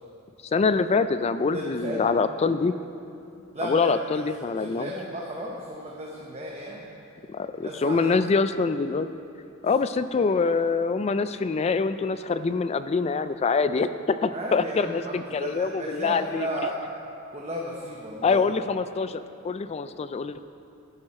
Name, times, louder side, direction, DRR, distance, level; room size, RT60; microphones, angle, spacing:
voice 1, 0.5-2.7 3.6-4.9 7.3-9.1 9.6-16.5 18.2-20.5, left 4 dB, 30° left, 12 dB, 0.3 m, -25 dB
voice 2, 1.5-2.1 3.5-3.9 4.5-6.8 7.6-8.2 14.3-16.8 17.3-18.5, right 1 dB, 30° right, -2 dB, 1.0 m, -34 dB
12.5 x 10.5 x 4.3 m, 2.6 s
head